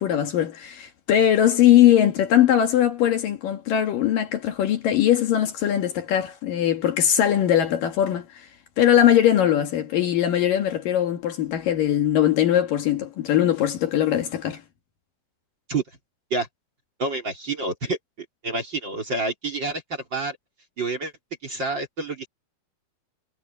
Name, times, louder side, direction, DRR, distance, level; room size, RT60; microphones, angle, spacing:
voice 1, 0.0-8.3 8.8-14.6, left 11 dB, 65° left, 3.0 m, -20 dB
voice 2, 17.0-18.0 18.4-20.4 20.8-21.1 21.4-22.3, right 3 dB, 30° right, 3.3 m, -28 dB
omnidirectional pair, 4.6 m